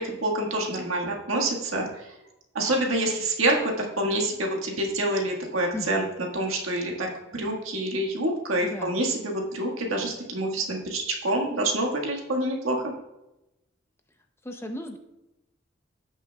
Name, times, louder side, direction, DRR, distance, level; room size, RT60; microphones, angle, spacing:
voice 1, 0.0-1.9 2.5-6.0 6.3-12.8, right 1 dB, 85° right, 0 dB, 1.6 m, -27 dB
voice 2, 8.6-9.0 14.4-15.0, left 1 dB, 10° left, 4 dB, 0.6 m, -35 dB
16.0 x 6.1 x 2.3 m, 0.94 s
head